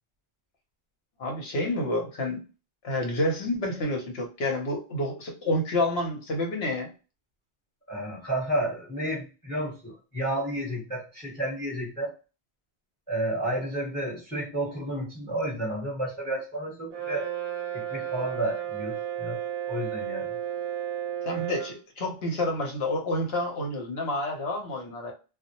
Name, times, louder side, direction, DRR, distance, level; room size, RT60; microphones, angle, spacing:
voice 1, 1.2-2.4 2.8-6.9 21.2-25.1, left 1 dB, 65° left, 2 dB, 1.0 m, -29 dB
voice 2, 7.9-12.1 13.1-17.3 17.7-19.4 19.7-20.3, right 1 dB, 10° left, -4 dB, 0.9 m, -31 dB
Brass instrument, 16.9-21.8, right 11 dB, 55° right, 0.7 m, -33 dB
2.2 x 2.0 x 2.8 m, 0.32 s
omnidirectional pair, 1.1 m